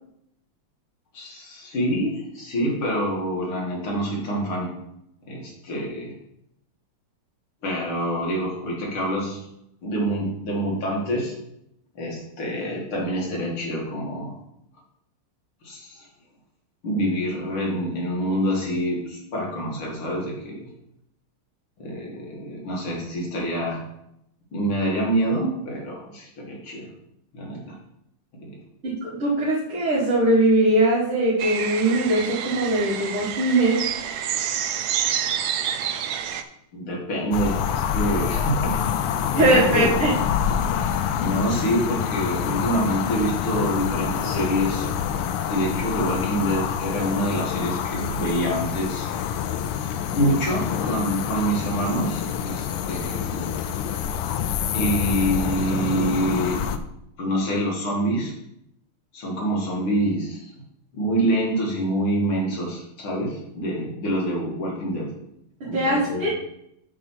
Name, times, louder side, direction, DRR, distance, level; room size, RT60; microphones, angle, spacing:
voice 1, 1.1-4.7 5.3-6.1 7.6-9.4 9.8-11.3 11.9-14.3 15.6-16.1 16.8-20.7 21.8-23.8 24.5-26.9 27.3-27.8 28.4-28.5 36.7-38.9 39.4-39.9 41.2-44.9 45.5-49.1 50.1-53.5 54.7-56.6 57.2-58.3 59.1-60.5 60.9-65.1 65.6-66.3, right 1 dB, 70° left, -3 dB, 3.0 m, -26 dB
voice 2, 28.8-33.8 34.2-34.3 39.3-40.1 65.6-66.3, right 1 dB, 70° right, -8 dB, 2.7 m, -21 dB
sound 1, 31.4-36.4, right 9 dB, 85° right, 0.8 m, -28 dB
sound 2, 37.3-56.8, left 8 dB, 90° left, 1.6 m, -26 dB
7.7 x 4.6 x 6.4 m, 0.79 s
omnidirectional pair, 2.4 m